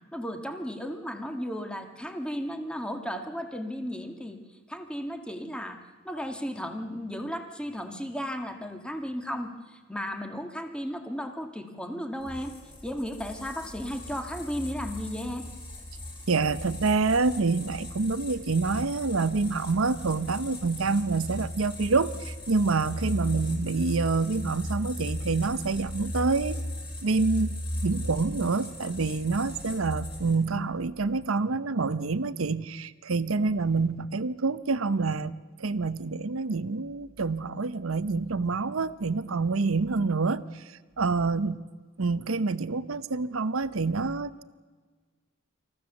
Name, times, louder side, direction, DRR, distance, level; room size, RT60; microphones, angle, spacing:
voice 1, 0.1-4.4 4.7-12.5 12.8-15.5, equal, 5° left, 5 dB, 1.7 m, -35 dB
sound 1, 12.2-30.6, left 1 dB, 25° left, 7.0 m, -37 dB
voice 2, 16.3-26.6 27.0-40.6 41.0-41.6 42.0-44.4, right 4 dB, 90° right, 14 dB, 0.8 m, -27 dB
27.5 x 14.5 x 7.2 m, 1.4 s
head